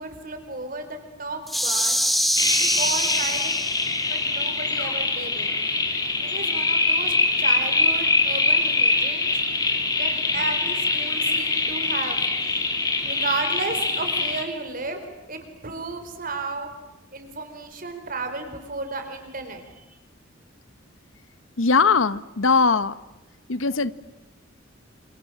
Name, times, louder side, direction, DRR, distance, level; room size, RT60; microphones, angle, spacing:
voice 1, 0.0-2.0 2.5-3.5 4.1-5.5 6.2-9.3 10.0-12.2 12.8-15.0 15.3-16.7 17.1-19.8, right 3 dB, 45° right, 4.5 m, -33 dB
sound 1, 1.5-4.0, equal, ahead, 2.3 m, -24 dB
sound 2, 2.4-14.4, left 3 dB, 20° left, 3.0 m, -24 dB
voice 2, 21.6-23.0 23.5-23.9, left 4 dB, 85° left, 1.0 m, -20 dB
28.0 x 27.5 x 7.5 m
head